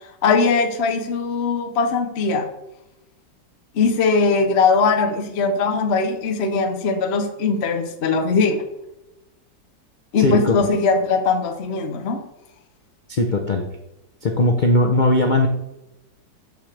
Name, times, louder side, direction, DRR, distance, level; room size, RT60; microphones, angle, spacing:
voice 1, 0.2-2.5 3.7-8.6 10.1-12.2, left 4 dB, 50° left, 5 dB, 0.8 m, -20 dB
voice 2, 10.2-10.7 13.1-13.7 14.2-15.5, left 2 dB, 80° left, 3 dB, 0.4 m, -19 dB
6.7 x 6.6 x 3.3 m, 0.91 s
omnidirectional pair, 1.9 m